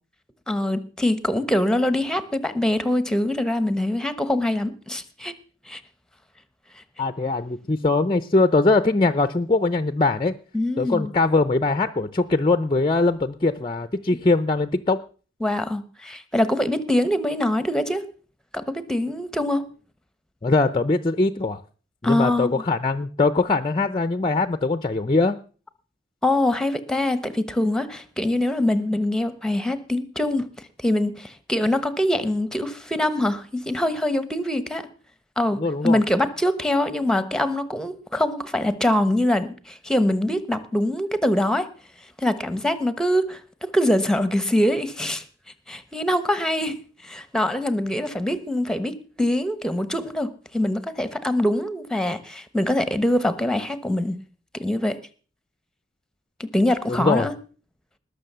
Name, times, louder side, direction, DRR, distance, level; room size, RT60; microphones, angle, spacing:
voice 1, 0.5-5.3 5.7-5.8 10.5-11.1 15.4-18.0 18.5-19.7 22.0-22.6 26.2-34.9 35.4-41.7 42.2-45.2 45.7-54.2 54.5-55.0 56.5-57.3, left 1 dB, 5° left, 13 dB, 1.1 m, -24 dB
voice 2, 7.0-10.3 10.8-15.0 20.4-21.6 22.0-25.4 35.5-36.0 56.9-57.3, left 3 dB, 25° left, 12 dB, 0.6 m, -21 dB
19.5 x 6.6 x 6.8 m, 0.39 s
head